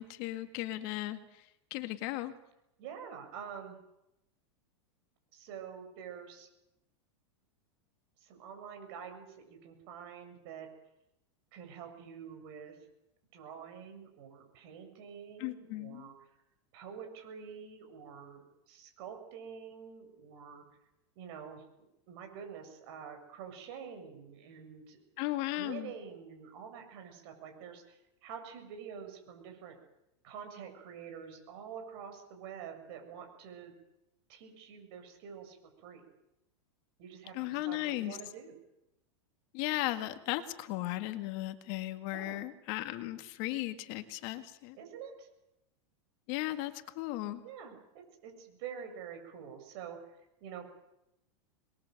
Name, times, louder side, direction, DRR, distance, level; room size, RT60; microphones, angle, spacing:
voice 1, 0.0-2.3 15.4-16.1 25.2-25.9 37.3-38.2 39.5-44.8 46.3-47.4, left 16 dB, 50° left, 9 dB, 2.0 m, -36 dB
voice 2, 2.8-3.8 5.3-6.5 8.2-10.7 11.5-12.8 13.3-16.1 16.7-20.6 21.2-21.6 22.1-25.0 25.5-29.8 30.2-33.7 34.3-36.1 37.0-38.6 42.1-42.4 44.7-45.3 47.4-50.7, right 7 dB, 55° right, 5 dB, 7.2 m, -47 dB
26.0 x 21.5 x 7.9 m, 0.88 s
supercardioid pair, 135°, 15 cm